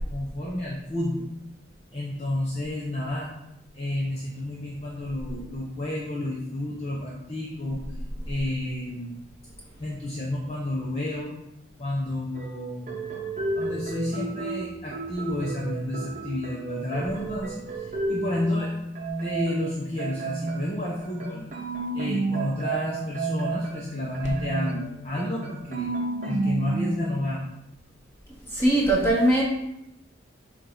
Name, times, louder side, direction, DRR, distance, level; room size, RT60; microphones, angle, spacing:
voice 1, 0.1-1.3 1.9-3.3 3.7-7.8 8.3-9.2 9.8-11.3 11.8-12.9 13.5-18.7 19.2-21.5 21.9-25.9 26.2-27.5, left 1 dB, 30° left, -4 dB, 0.8 m, -30 dB
sound 1, 12.3-18.6 19.0-27.0, right 3 dB, 40° right, 0.9 m, -31 dB
voice 2, 28.5-29.4, right 1 dB, 15° left, -6 dB, 1.9 m, -20 dB
7.4 x 2.6 x 5.5 m, 0.83 s
head